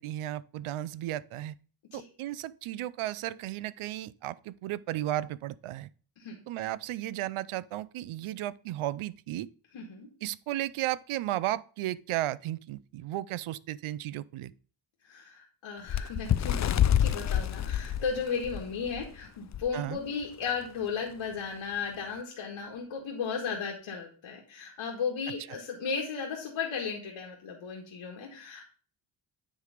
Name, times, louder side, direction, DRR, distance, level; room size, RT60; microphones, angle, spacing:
voice 1, 0.0-1.5 1.9-5.9 6.5-9.5 10.2-14.5 19.7-20.0, right 14 dB, 90° right, 0.5 m, -34 dB
voice 2, 9.7-10.1 15.0-28.7, left 5 dB, 85° left, 1.7 m, -35 dB
Bird, 15.9-19.1 19.5-19.7 20.0-20.2 21.0-21.1, left 10 dB, 40° left, 0.4 m, -27 dB
9.7 x 3.4 x 4.9 m
cardioid pair, 100°, 48 cm